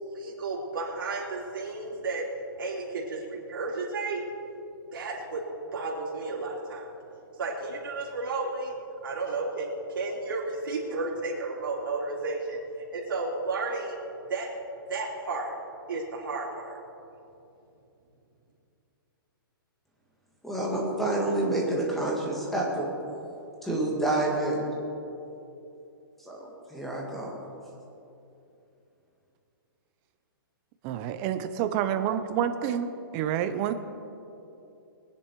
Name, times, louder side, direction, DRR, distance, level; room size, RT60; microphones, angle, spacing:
voice 1, 0.0-2.2 2.6-4.2 4.9-5.4 5.7-6.9 7.4-8.7 9.0-12.6 12.9-14.0 14.3-14.5 14.9-15.5 15.9-16.8, right 3 dB, 65° right, -5 dB, 3.0 m, -32 dB
voice 2, 20.4-22.9 23.6-24.7 26.2-27.4, right 2 dB, ahead, -3 dB, 1.6 m, -28 dB
voice 3, 30.8-32.9 33.1-33.7, right 9 dB, 15° right, 9 dB, 0.4 m, -28 dB
21.0 x 9.8 x 4.5 m, 2.8 s
hypercardioid pair, 175°, 12 cm